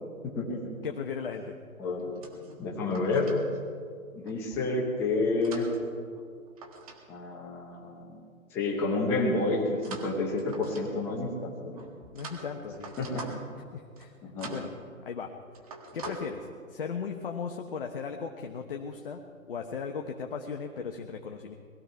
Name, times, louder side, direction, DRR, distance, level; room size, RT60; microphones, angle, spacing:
voice 1, 0.2-0.6 1.8-2.3 2.6-3.3 4.1-5.7 7.1-8.2 8.5-11.8 13.0-13.3 14.2-14.5 16.0-16.2, left 3 dB, 5° left, -1 dB, 0.9 m, -30 dB
voice 2, 0.8-1.6 12.1-12.9 13.7-14.1 14.5-14.7 15.0-15.3 15.9-19.2 19.5-21.5, left 6 dB, 40° left, 3 dB, 1.1 m, -37 dB
sound 1, 2.0-3.4 4.2-4.7 5.2-7.0 7.3-7.5 9.8-11.1 11.7-13.6 13.9-14.1 14.4-14.7 15.1-15.3 15.5-16.1, right 4 dB, 25° right, 1.7 m, -45 dB
20.5 x 14.5 x 4.6 m, 2.1 s
hypercardioid pair, 160°, 42 cm